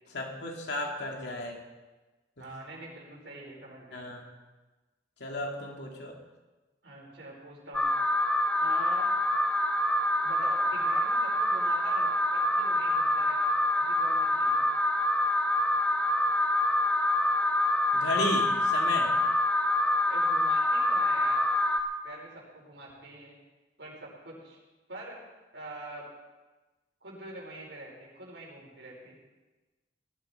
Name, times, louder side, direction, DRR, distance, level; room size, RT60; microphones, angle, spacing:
voice 1, 0.1-1.6 2.4-2.5 3.9-4.3 5.2-6.2 17.9-19.1, left 1 dB, 70° left, 0 dB, 2.8 m, -34 dB
voice 2, 2.4-4.1 6.8-7.9 8.6-9.1 10.2-14.7 20.1-21.4 22.0-23.3 23.8-24.6 24.9-25.2 25.5-26.1 27.0-29.2, right 2 dB, 75° right, -2 dB, 5.1 m, -44 dB
Alarm, 7.7-21.8, left 1 dB, 10° left, 1.1 m, -26 dB
18.5 x 13.5 x 4.6 m, 1.2 s
head